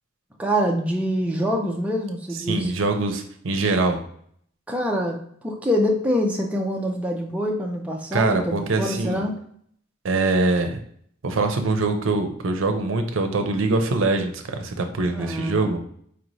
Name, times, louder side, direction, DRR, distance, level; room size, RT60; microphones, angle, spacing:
voice 1, 0.4-2.7 4.7-5.2 5.4-9.3 15.1-15.7, equal, 5° right, 0 dB, 0.4 m, -25 dB
voice 2, 2.5-4.0 8.1-9.2 10.0-10.8 11.2-15.8, right 3 dB, 75° right, 6 dB, 0.6 m, -23 dB
4.5 x 3.0 x 2.6 m, 0.63 s
head